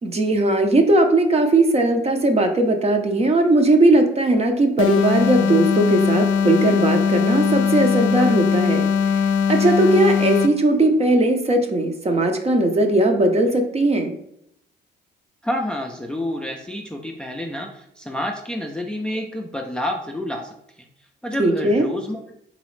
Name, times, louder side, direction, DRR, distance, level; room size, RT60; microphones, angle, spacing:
voice 1, 0.0-14.2 21.4-21.9, right 2 dB, 30° right, 5 dB, 0.7 m, -18 dB
sound 1, 4.8-10.7, left 6 dB, 80° left, 0.4 m, -20 dB
voice 2, 15.4-20.9 21.2-22.4, left 1 dB, 5° left, 2 dB, 0.4 m, -29 dB
4.0 x 3.0 x 3.1 m, 0.75 s
cardioid pair, 90°, 20 cm